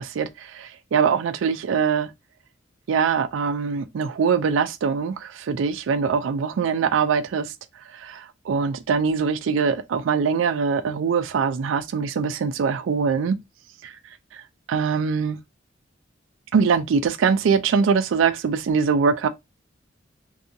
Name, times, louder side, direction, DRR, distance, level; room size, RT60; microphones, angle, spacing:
voice 1, 0.0-2.1 2.9-7.5 7.9-13.4 13.8-13.9 14.3-14.4 14.7-15.4 16.5-19.3, right 6 dB, 80° right, 0.4 m, -23 dB
2.7 x 2.6 x 2.4 m
head